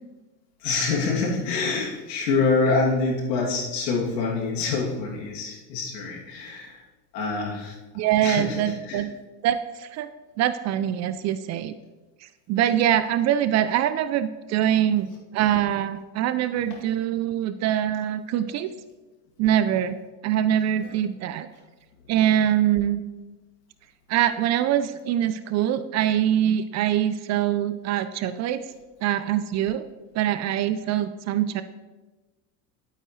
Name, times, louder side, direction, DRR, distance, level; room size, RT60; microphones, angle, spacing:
voice 1, 0.6-6.8 7.1-7.8 8.2-9.1 14.8-14.9 16.7-16.8 20.8-20.9, left 4 dB, 85° left, -2 dB, 2.7 m, -26 dB
voice 2, 7.9-9.1 9.4-10.1 10.4-11.8 12.5-18.7 19.4-20.0 20.2-21.5 22.1-23.0 24.1-28.6 29.0-29.9 30.1-31.6, right 11 dB, 35° right, 12 dB, 0.4 m, -23 dB
11.5 x 8.7 x 3.2 m, 1.2 s
supercardioid pair, 110°, 49 cm